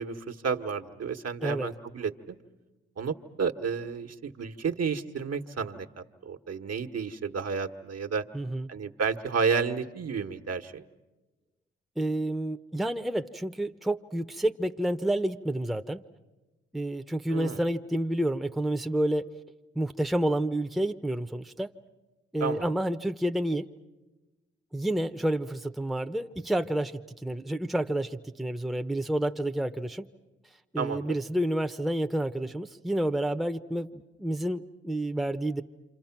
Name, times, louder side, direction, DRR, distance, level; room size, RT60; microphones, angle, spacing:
voice 1, 0.0-2.4 3.0-8.2 8.7-10.8 17.3-17.6 22.4-22.7 30.8-31.1, right 5 dB, 55° right, 5 dB, 1.5 m, -31 dB
voice 2, 8.3-8.7 12.0-16.0 16.7-19.2 19.7-21.7 22.3-23.7 24.7-26.9 27.2-30.1 30.7-35.6, right 1 dB, ahead, 7 dB, 0.9 m, -29 dB
28.0 x 26.0 x 6.0 m, 1.1 s
hypercardioid pair, 45°, 31 cm